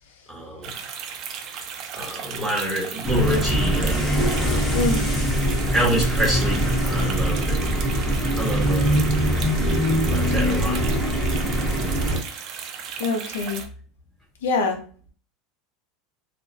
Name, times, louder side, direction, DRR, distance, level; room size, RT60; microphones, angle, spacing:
voice 1, 0.3-0.7 1.9-4.2 5.7-7.9 8.3-9.1 10.1-10.8, equal, 5° right, -4 dB, 1.1 m, -27 dB
sound 1, 0.6-13.7, right 7 dB, 50° right, 0.4 m, -35 dB
sound 2, 3.0-12.2, equal, 15° left, 1.0 m, -22 dB
voice 2, 4.7-5.0 13.0-13.6 14.4-14.8, left 3 dB, 85° left, 4 dB, 0.5 m, -24 dB
2.3 x 2.1 x 2.6 m, 0.42 s
supercardioid pair, 110°, 0 cm